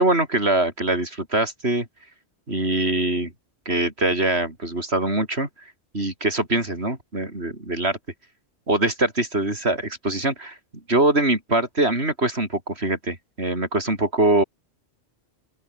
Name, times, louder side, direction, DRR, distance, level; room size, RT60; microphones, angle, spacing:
voice 1, 0.0-1.9 2.5-3.3 3.7-5.5 5.9-8.0 8.7-10.6 10.9-14.4, right 2 dB, 65° right, 5.7 m, -23 dB
open air
omnidirectional pair, 1.2 m